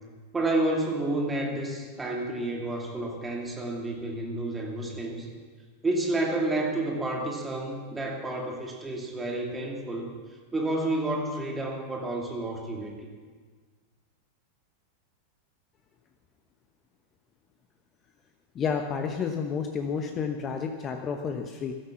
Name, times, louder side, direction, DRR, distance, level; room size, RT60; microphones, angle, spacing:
voice 1, 0.3-5.3 5.8-10.1 10.5-13.1, right 2 dB, 15° right, 0 dB, 2.6 m, -30 dB
voice 2, 18.5-21.7, left 6 dB, 25° left, 5 dB, 1.1 m, -30 dB
16.5 x 12.5 x 7.0 m, 1.5 s
figure-of-eight pair, 90°, 0 cm